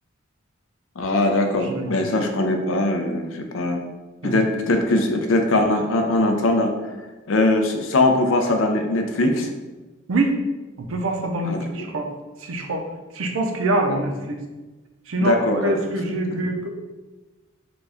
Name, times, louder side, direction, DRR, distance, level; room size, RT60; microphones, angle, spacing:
voice 1, 1.0-3.8 4.2-6.7 7.3-9.5 11.4-11.9 15.2-15.7, left 2 dB, 70° left, 4 dB, 0.5 m, -21 dB
voice 2, 1.6-2.0 4.2-4.4 10.1-10.4 10.8-12.1 12.4-12.8 13.1-14.4 15.1-16.7, right 2 dB, 80° right, 3 dB, 0.5 m, -25 dB
3.9 x 2.3 x 3.4 m, 1.2 s
head